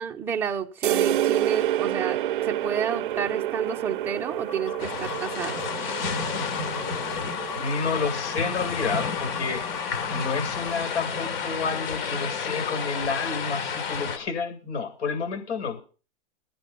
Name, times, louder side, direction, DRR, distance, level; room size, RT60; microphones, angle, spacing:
voice 1, 0.0-5.6, right 7 dB, 5° right, 3 dB, 0.7 m, -30 dB
sound 1, 0.8-8.4, right 12 dB, 45° right, 0.6 m, -29 dB
sound 2, 4.3-10.7, left 7 dB, 30° left, 1.1 m, -39 dB
sound 3, 4.8-14.2, left 5 dB, 50° left, 4.4 m, -31 dB
voice 2, 7.5-9.6 10.1-15.8, left 4 dB, 75° left, 6 dB, 7.8 m, -30 dB
17.0 x 10.0 x 5.8 m, 0.38 s
hypercardioid pair, 170°, 35 cm